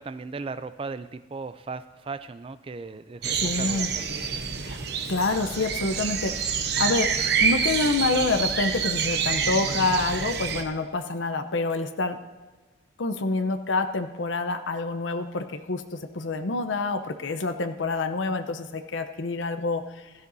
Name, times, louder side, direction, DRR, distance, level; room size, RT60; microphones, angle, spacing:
voice 1, 0.0-4.1, right 4 dB, 30° right, 12 dB, 0.3 m, -37 dB
sound 1, 3.2-10.6, right 6 dB, 60° right, 0.9 m, -27 dB
voice 2, 3.4-3.9 4.6-4.8 5.1-7.1 7.4-12.2 13.0-19.8, left 3 dB, 85° left, 8 dB, 0.8 m, -27 dB
16.5 x 13.0 x 2.7 m, 1.3 s
head